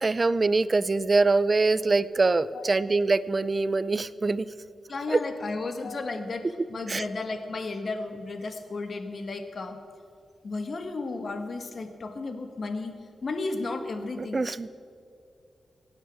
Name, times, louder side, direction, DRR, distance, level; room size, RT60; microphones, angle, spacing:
voice 1, 0.0-4.5 5.1-5.2 6.9-7.0 14.3-14.7, right 3 dB, 40° right, 17 dB, 0.6 m, -24 dB
voice 2, 2.5-2.9 4.9-9.8 10.4-13.0 13.2-14.4, left 3 dB, 55° left, 8 dB, 1.7 m, -33 dB
17.0 x 9.6 x 8.8 m, 2.3 s
cardioid pair, 60°, 0 cm